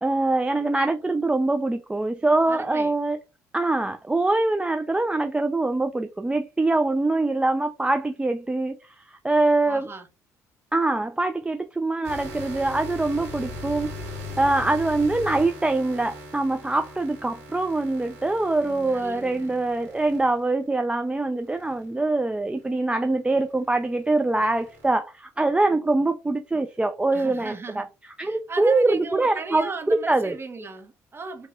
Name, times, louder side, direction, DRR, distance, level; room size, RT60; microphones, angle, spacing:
voice 1, 0.0-3.2 3.5-8.9 9.2-9.9 10.7-13.9 14.4-27.9 28.2-30.3, right 2 dB, 15° right, 0.5 m, -24 dB
voice 2, 2.5-2.9 9.6-10.1 18.6-19.6 27.1-27.9 28.2-31.5, right 4 dB, 30° right, 1.3 m, -37 dB
sound 1, 12.0-20.7 21.4-21.9 22.5-22.8 23.1-24.9, left 1 dB, 90° right, 2.1 m, -39 dB
5.7 x 2.9 x 2.4 m
hypercardioid pair, 60°, 8 cm